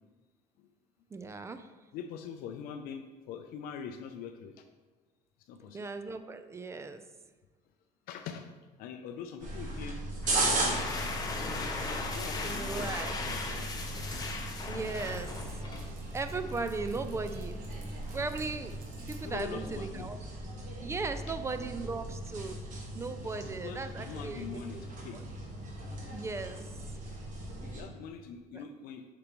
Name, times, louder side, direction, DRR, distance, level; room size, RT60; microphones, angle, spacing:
voice 1, 1.1-1.7 5.7-7.0 12.4-13.2 14.7-15.6 16.1-17.6 18.1-20.2 20.8-22.6 22.9-24.8 25.1-25.2 26.1-26.9 28.5-28.6, right 3 dB, 20° right, 10 dB, 0.4 m, -37 dB
voice 2, 1.9-4.6 5.5-5.8 8.1-8.5 8.8-10.0 10.3-11.7 12.1-14.1 19.2-20.1 21.3-21.4 23.2-25.2 27.6-29.1, left 7 dB, 75° left, 6 dB, 0.5 m, -44 dB
sound 1, 9.4-27.8, right 1 dB, 55° right, 1.5 m, -37 dB
sound 2, 10.2-15.9, left 3 dB, 25° left, 0.8 m, -38 dB
Dog, 14.2-20.0, right 2 dB, 75° right, 1.2 m, -56 dB
6.6 x 5.2 x 3.0 m, 1.3 s
cardioid pair, 120°, 15 cm